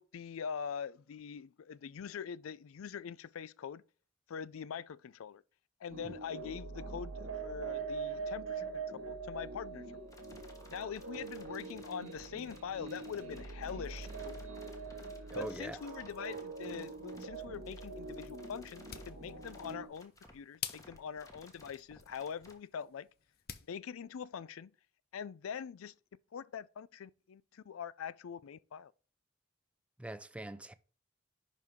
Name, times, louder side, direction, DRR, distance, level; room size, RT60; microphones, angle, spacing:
voice 1, 0.0-3.8 4.3-5.4 5.8-9.9 10.7-14.4 15.3-23.1 23.7-24.7 25.1-25.9 26.3-28.9, left 7 dB, 85° left, 0.4 m, -43 dB
sound 1, 5.9-19.9, right 4 dB, 85° right, 1.5 m, -43 dB
sound 2, 10.1-22.5, left 1 dB, 15° left, 1.4 m, -58 dB
voice 2, 15.3-15.8 30.0-30.7, right 1 dB, 5° right, 0.4 m, -42 dB
sound 3, 18.6-23.7, left 10 dB, 50° left, 0.7 m, -49 dB
10.5 x 4.6 x 3.6 m
head